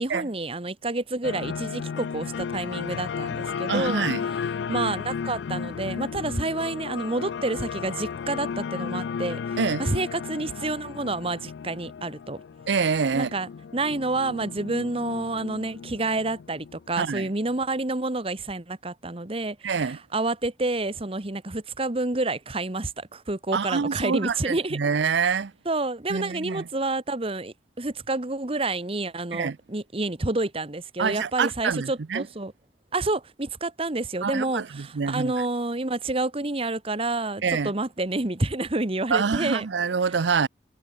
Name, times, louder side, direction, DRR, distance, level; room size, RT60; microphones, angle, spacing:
voice 1, 0.0-4.1 4.7-12.4 13.1-24.8 25.6-32.5 32.9-39.7, right 2 dB, 30° right, 1.3 m, -29 dB
sound 1, 1.2-17.6, left 6 dB, 80° left, 0.4 m, -34 dB
voice 2, 3.7-4.2 9.6-9.9 12.7-13.3 17.0-17.3 19.6-20.0 23.5-25.5 26.1-26.7 29.3-29.6 31.0-32.2 34.2-35.3 37.4-37.7 39.1-40.5, right 5 dB, 80° right, 0.6 m, -26 dB
head